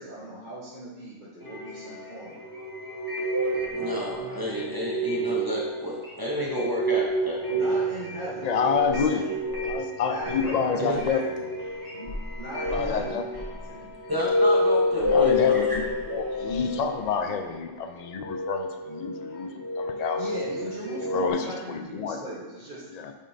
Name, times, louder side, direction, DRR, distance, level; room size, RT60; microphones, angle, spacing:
voice 1, 0.0-2.3 7.5-9.4 10.1-11.3 11.9-13.2 13.5-14.3 20.1-22.8, right 1 dB, 35° right, -9 dB, 1.4 m, -39 dB
sound 1, 1.4-17.7 18.1-21.3, left 1 dB, 20° left, 1.1 m, -29 dB
voice 2, 3.7-7.6 10.8-11.0 14.1-15.8, equal, 20° right, -4 dB, 0.9 m, -31 dB
voice 3, 8.4-9.2 9.6-11.2 12.7-13.3 14.9-20.2 21.1-22.2 22.9-23.1, left 6 dB, 65° left, 6 dB, 0.4 m, -29 dB
9.0 x 5.1 x 2.8 m, 1.2 s
omnidirectional pair, 1.3 m